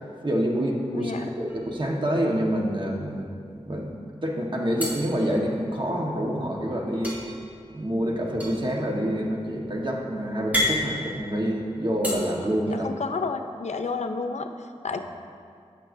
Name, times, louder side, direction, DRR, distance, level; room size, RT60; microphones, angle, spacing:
voice 1, 0.2-3.3 3.7-7.2 7.7-12.9, equal, 45° right, -1 dB, 1.3 m, -27 dB
voice 2, 0.9-1.3 12.7-15.0, left 4 dB, 85° left, 7 dB, 0.5 m, -31 dB
sound 1, 1.5-2.4 2.7-2.8 3.1-3.9 4.8-6.1 7.0-12.1, left 1 dB, 15° right, 2.6 m, -32 dB
17.5 x 6.7 x 2.6 m, 2.3 s
wide cardioid pair, 70°, 11 cm